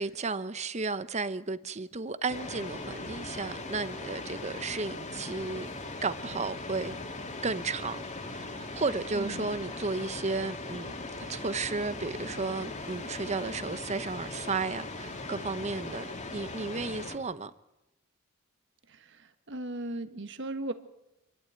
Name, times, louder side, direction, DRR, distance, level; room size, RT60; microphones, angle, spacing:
voice 1, 0.0-5.7 6.0-7.0 7.4-8.0 8.3-10.9 11.3-17.5, right 3 dB, 35° right, 0.8 m, -33 dB
sound 1, 2.3-17.2, left 2 dB, 35° left, 2.5 m, -39 dB
voice 2, 18.9-20.7, right 1 dB, 60° right, 1.5 m, -37 dB
27.0 x 12.5 x 8.9 m
head